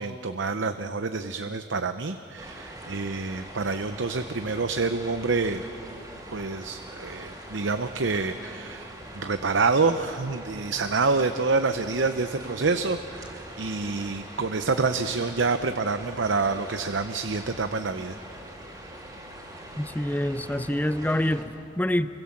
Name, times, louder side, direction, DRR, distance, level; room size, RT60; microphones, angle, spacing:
voice 1, 0.0-5.6 6.3-18.2, right 4 dB, 80° right, 9 dB, 0.8 m, -27 dB
sound 1, 2.4-21.4, right 1 dB, 20° right, 3.2 m, -43 dB
voice 2, 19.8-22.1, left 1 dB, 10° left, 12 dB, 0.6 m, -26 dB
29.0 x 24.5 x 7.3 m, 2.7 s
head